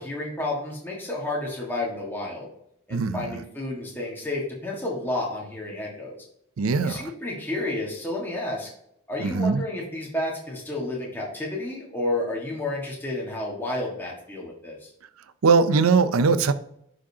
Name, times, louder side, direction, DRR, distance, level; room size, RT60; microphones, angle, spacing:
voice 1, 0.0-2.5 2.9-6.1 6.8-8.7 9.1-14.9, left 2 dB, 10° left, 1.5 m, -31 dB
voice 2, 2.9-3.4 6.6-7.1 9.2-9.6 15.4-16.5, right 4 dB, 75° right, 0.5 m, -21 dB
11.0 x 5.1 x 2.8 m
head